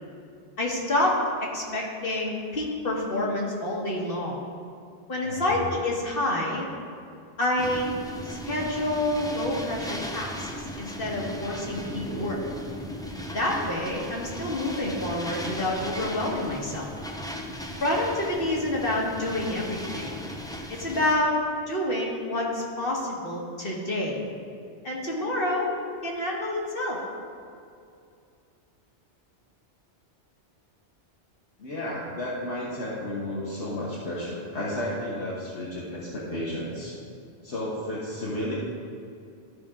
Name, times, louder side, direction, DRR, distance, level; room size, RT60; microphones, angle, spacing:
voice 1, 0.6-1.1 1.5-4.4 5.1-6.6 7.4-7.9 8.2-10.5 10.8-12.4 13.3-16.9 17.8-20.2 20.7-21.3 21.7-24.2 24.8-25.7 26.0-27.0, left 1 dB, 55° left, -2 dB, 1.7 m, -28 dB
voice 2, 5.2-5.6 12.1-12.3 31.6-36.9 37.4-38.5, left 1 dB, 75° left, -8 dB, 1.6 m, -32 dB
sound 1, 7.6-21.1, equal, 5° left, 0.5 m, -37 dB
14.0 x 5.4 x 3.7 m, 2.4 s
omnidirectional pair, 1.2 m